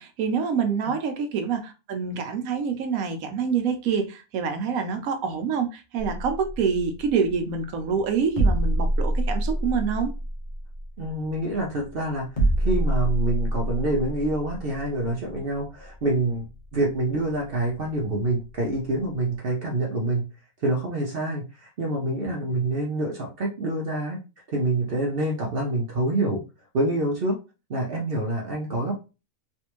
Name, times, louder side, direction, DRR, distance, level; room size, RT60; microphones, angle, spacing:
voice 1, 0.0-10.1, right 6 dB, 80° right, 1.1 m, -26 dB
sound 1, 6.0-19.3, right 1 dB, 40° left, 0.9 m, -28 dB
voice 2, 11.0-12.3 12.6-16.5 16.7-20.2 20.6-24.2 24.5-26.4 26.7-27.4 27.7-29.0, right 2 dB, 50° right, 0.8 m, -26 dB
3.4 x 2.6 x 2.9 m
omnidirectional pair, 1.5 m